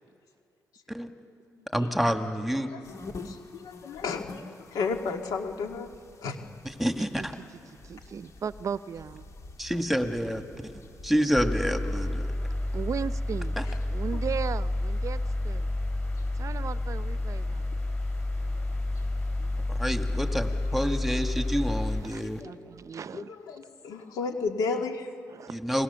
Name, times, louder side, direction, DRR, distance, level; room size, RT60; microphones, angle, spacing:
voice 1, 1.7-2.7 6.6-7.4 9.6-12.2 13.6-13.7 19.7-22.4 25.5-25.8, equal, ahead, 6 dB, 1.9 m, -28 dB
sound 1, 2.8-22.4, left 3 dB, 55° left, 2.4 m, -50 dB
voice 2, 3.2-5.9 6.2-6.4 14.1-14.2 20.2-20.4 20.9-21.0 22.4-22.5 23.1-25.1, left 4 dB, 85° left, 4 dB, 2.0 m, -33 dB
voice 3, 7.9-9.3 12.7-13.5 13.9-15.7 16.4-17.7 22.0-23.3 25.3-25.6, right 7 dB, 55° right, 15 dB, 0.6 m, -36 dB
sound 2, 11.3-22.0, left 2 dB, 20° left, 4.3 m, -30 dB
29.5 x 21.5 x 7.0 m, 2.3 s
cardioid pair, 70°, 6 cm